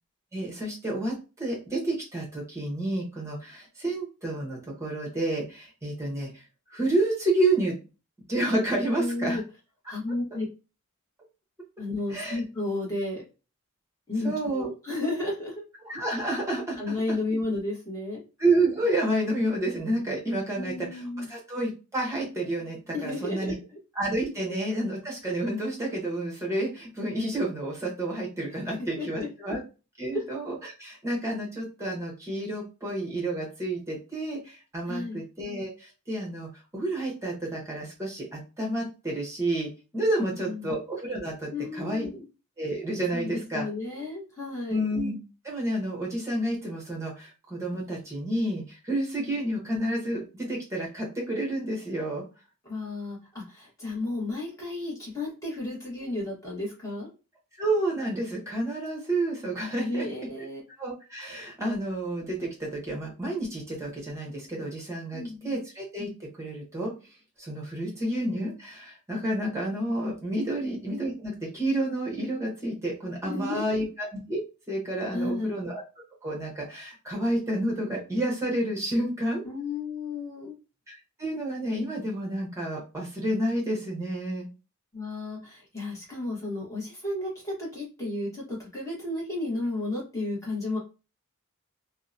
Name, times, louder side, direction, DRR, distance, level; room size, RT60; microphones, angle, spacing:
voice 1, 0.3-6.4 6.7-7.8 8.3-9.4 12.1-12.4 14.2-14.7 15.8-17.0 18.4-21.0 21.3-23.5 24.0-29.6 30.0-42.1 42.6-43.7 44.7-45.1 45.4-52.2 57.6-60.1 60.8-66.9 67.4-75.8 76.2-79.4 80.9-84.4, right 1 dB, 15° right, -2 dB, 0.8 m, -30 dB
voice 2, 8.9-9.4 9.9-10.4 11.8-13.2 14.1-15.6 16.8-18.2 20.6-21.3 22.9-23.5 28.6-28.7 29.0-29.5 30.1-30.2 34.9-35.2 40.2-40.7 41.5-42.2 43.1-44.8 49.3-49.4 52.6-57.1 59.8-60.6 65.1-65.6 70.5-70.7 73.2-73.8 75.1-75.6 79.4-80.6 84.9-90.8, left 2 dB, 15° left, -5 dB, 1.0 m, -33 dB
2.7 x 2.0 x 2.5 m, 0.31 s
head